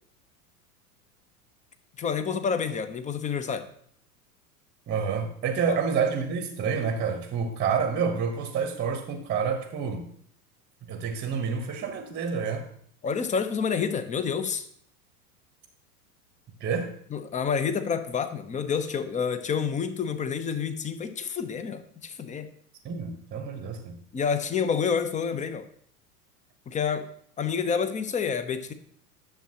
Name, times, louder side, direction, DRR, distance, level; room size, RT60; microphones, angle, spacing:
voice 1, 2.0-3.7 5.7-5.8 13.0-14.7 17.1-22.5 24.1-25.6 26.7-27.1 27.4-28.7, left 6 dB, 15° left, 10 dB, 0.7 m, -28 dB
voice 2, 4.9-10.1 10.9-12.7 16.6-16.9 22.8-24.0, right 6 dB, 25° right, 7 dB, 1.0 m, -28 dB
10.5 x 7.1 x 2.9 m, 0.63 s
figure-of-eight pair, 85°, 46 cm